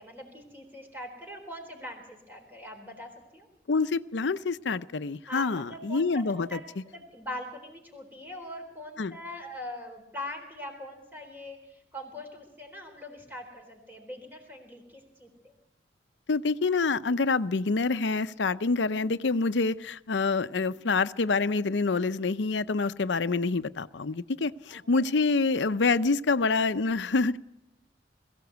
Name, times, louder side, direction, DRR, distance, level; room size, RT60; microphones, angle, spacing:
voice 1, 0.0-3.5 5.3-15.5 24.7-25.1, left 1 dB, 10° right, 3 dB, 3.9 m, -42 dB
voice 2, 3.7-6.8 9.0-9.2 16.3-27.4, left 4 dB, 80° left, 13 dB, 0.6 m, -27 dB
21.5 x 15.5 x 8.1 m, 0.88 s
head